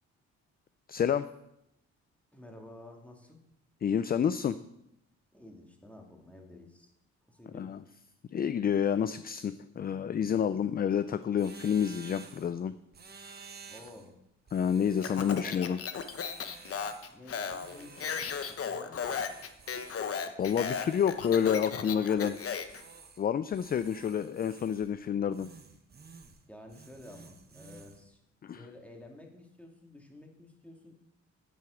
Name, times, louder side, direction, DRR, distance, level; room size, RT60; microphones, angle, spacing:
voice 1, 0.9-1.3 3.8-4.5 7.5-7.8 8.3-12.7 13.3-13.4 14.5-15.8 20.4-22.4 23.2-25.5 28.4-28.6, left 8 dB, 30° left, 13 dB, 0.4 m, -29 dB
voice 2, 2.3-3.4 5.3-6.9 7.3-7.7 13.7-14.2 15.0-15.6 17.1-19.2 26.5-28.2 28.5-30.9, left 1 dB, 5° left, 2 dB, 2.2 m, -51 dB
sound 1, 11.4-12.6 12.9-14.1 14.5-15.6 16.0-17.2 17.5-18.7 19.0-20.1 20.4-21.8 22.2-23.3 23.5-24.9 25.3-26.4 26.7-28.0, right 5 dB, 35° right, 1.2 m, -52 dB
Speech, 15.0-22.8, left 6 dB, 50° left, 1.0 m, -35 dB
9.3 x 7.6 x 6.3 m, 0.82 s
cardioid pair, 90°, 30 cm